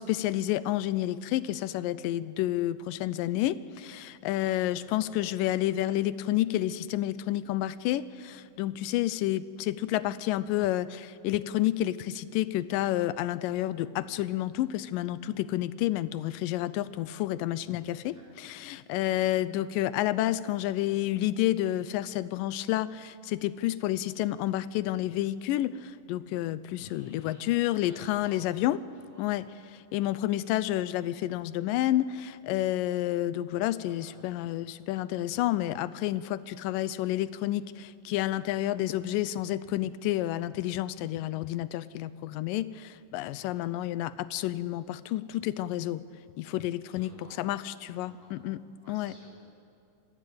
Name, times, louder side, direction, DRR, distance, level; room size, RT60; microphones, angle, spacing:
voice 1, 0.0-28.8 29.2-29.5 29.9-46.0 46.4-48.6 48.9-49.1, left 14 dB, 85° left, 16 dB, 2.3 m, -30 dB
voice 2, 4.5-5.1 17.8-18.2 18.9-19.2 26.8-28.4 29.0-29.3 33.9-34.3 43.4-43.5 46.9-47.4 47.9-48.3 48.8-49.5, equal, 15° right, -4 dB, 7.0 m, -55 dB
26.0 x 15.0 x 8.6 m, 2.5 s
omnidirectional pair, 3.8 m